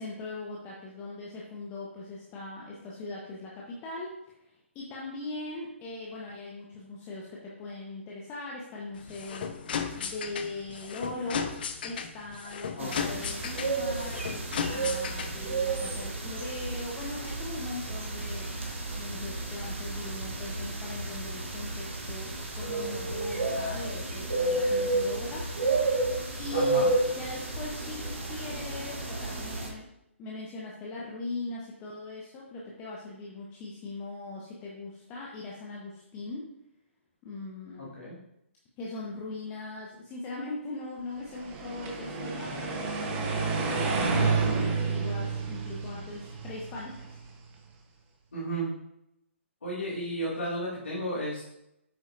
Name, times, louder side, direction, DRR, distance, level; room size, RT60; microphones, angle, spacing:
voice 1, 0.0-4.1 4.4-9.5 10.0-11.5 11.8-18.6 18.9-26.8 27.2-29.9 30.2-36.5 37.2-37.9 38.8-47.1, left 2 dB, 20° left, -4 dB, 1.2 m, -40 dB
sound 1, 8.9-15.5, left 7 dB, 45° left, 0.7 m, -35 dB
voice 2, 12.8-13.2 26.5-26.9 37.8-38.2 42.4-42.6 48.3-48.7 49.6-51.4, equal, 65° left, -8 dB, 2.4 m, -33 dB
sound 2, 12.8-29.7, right 2 dB, 65° right, 1.7 m, -31 dB
sound 3, 41.3-47.4, right 4 dB, 25° right, 1.2 m, -30 dB
9.0 x 6.2 x 2.6 m, 0.83 s
figure-of-eight pair, 125°, 7 cm